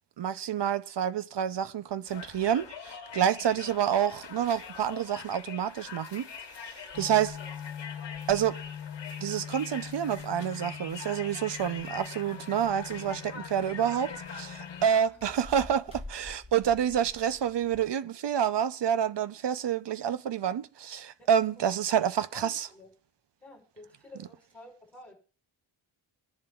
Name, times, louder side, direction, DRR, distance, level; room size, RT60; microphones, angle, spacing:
voice 1, 0.2-6.3 6.6-7.4 8.3-8.6 9.2-22.7, right 9 dB, 60° right, 0.6 m, -28 dB
Conversation, 2.1-15.0, left 6 dB, 60° left, 1.4 m, -44 dB
sound 1, 6.9-14.9, left 8 dB, 75° left, 1.1 m, -43 dB
sound 2, 12.6-17.9, left 1 dB, 10° right, 2.0 m, -49 dB
voice 2, 14.9-15.3 21.2-21.7 22.3-22.9 23.4-25.1, left 1 dB, 5° left, 4.8 m, -51 dB
26.5 x 11.0 x 2.4 m
wide cardioid pair, 125°, 48 cm